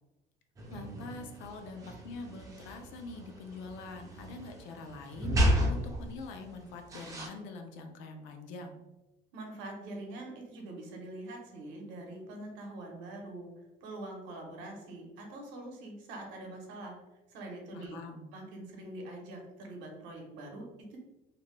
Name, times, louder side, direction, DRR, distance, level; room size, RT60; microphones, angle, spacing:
sound 1, 0.6-7.3, equal, 20° right, 0.4 m, -33 dB
voice 1, 0.7-8.8 17.7-18.3, left 3 dB, 80° left, 5 dB, 0.5 m, -45 dB
voice 2, 9.3-13.5 13.8-17.0 17.3-18.0 18.3-21.0, right 2 dB, 75° right, 1 dB, 0.8 m, -44 dB
2.6 x 2.1 x 3.0 m, 1.0 s
cardioid pair, 180°, 19 cm